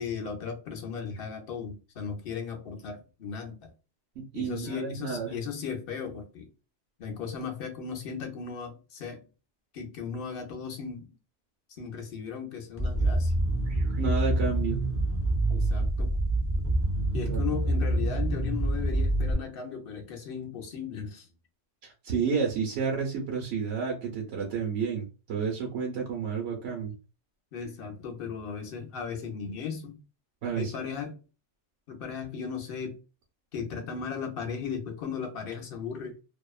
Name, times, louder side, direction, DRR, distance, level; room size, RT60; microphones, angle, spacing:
voice 1, 0.0-3.7 4.3-6.5 7.0-9.2 9.7-11.2 11.8-13.3 15.5-16.1 17.1-21.3 27.5-30.0 30.5-31.2 31.9-33.0 33.5-36.2, left 6 dB, 55° left, 0.8 m, -36 dB
voice 2, 4.2-5.4 13.7-14.8 17.3-17.4 21.8-26.9 30.4-30.7, right 6 dB, 90° right, 1.0 m, -31 dB
sound 1, 12.8-19.3, right 1 dB, 20° left, 0.3 m, -26 dB
2.7 x 2.1 x 2.3 m
omnidirectional pair, 1.2 m